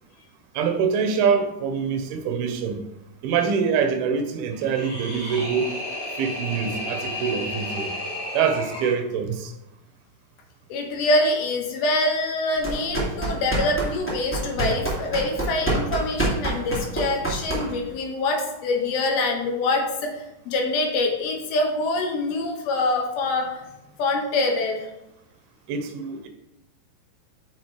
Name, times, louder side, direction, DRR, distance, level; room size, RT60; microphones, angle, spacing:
voice 1, 0.6-2.8 3.2-5.7 6.2-7.9 8.3-9.5 25.7-26.3, right 6 dB, 80° right, 6 dB, 2.5 m, -24 dB
sound 1, 4.5-9.0, left 1 dB, 15° right, 1.3 m, -32 dB
voice 2, 10.7-23.6 24.0-24.9, left 2 dB, 70° left, 2 dB, 2.8 m, -25 dB
sound 2, 12.6-17.9, right 2 dB, 15° left, 0.5 m, -27 dB
8.6 x 6.6 x 3.2 m, 0.93 s
omnidirectional pair, 4.8 m